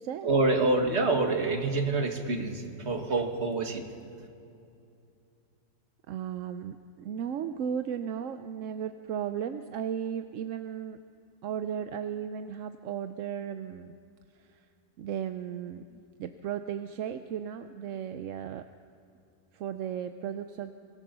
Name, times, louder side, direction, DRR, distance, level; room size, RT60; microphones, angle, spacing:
voice 1, 0.2-3.8, right 3 dB, 45° right, 4 dB, 2.1 m, -27 dB
voice 2, 6.1-11.0 11.4-13.9 15.0-18.7 19.5-20.7, right 8 dB, 65° right, 9 dB, 0.9 m, -35 dB
24.5 x 17.5 x 6.8 m, 2.6 s
omnidirectional pair, 1.7 m